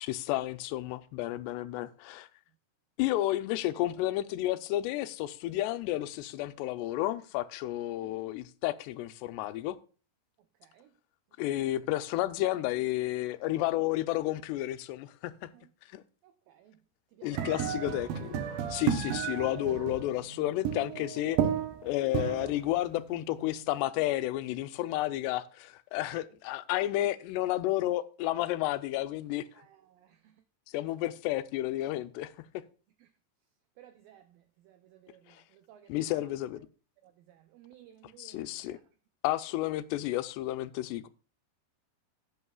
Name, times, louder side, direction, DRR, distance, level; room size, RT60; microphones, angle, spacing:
voice 1, 0.0-2.3 3.0-9.8 11.4-15.5 15.9-16.0 17.2-18.4 18.7-21.4 21.8-29.5 30.7-32.3 35.9-36.7 38.2-38.8 39.2-41.1, left 15 dB, 85° left, 2.7 m, -31 dB
sound 1, 17.3-23.6, right 8 dB, 70° right, 2.5 m, -33 dB
voice 2, 33.8-34.4 34.7-35.9 37.0-38.8, right 11 dB, 85° right, 2.0 m, -57 dB
16.5 x 8.5 x 2.3 m
omnidirectional pair, 4.8 m